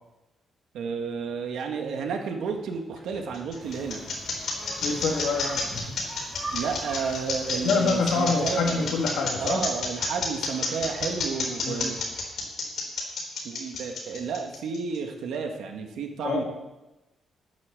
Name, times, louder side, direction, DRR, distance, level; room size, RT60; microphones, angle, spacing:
voice 1, 0.7-4.0 6.5-8.9 9.4-12.0 13.4-16.4, right 5 dB, 80° right, 3 dB, 1.9 m, -31 dB
sound 1, 2.9-15.0, left 4 dB, 55° left, 4.0 m, -30 dB
sound 2, 3.6-9.1, right 1 dB, 10° right, 2.0 m, -42 dB
voice 2, 4.8-6.0 7.5-9.6 11.6-11.8 16.2-16.4, left 4 dB, 75° left, 0 dB, 2.9 m, -26 dB
11.0 x 9.2 x 7.3 m, 1.0 s
wide cardioid pair, 175°, 0 cm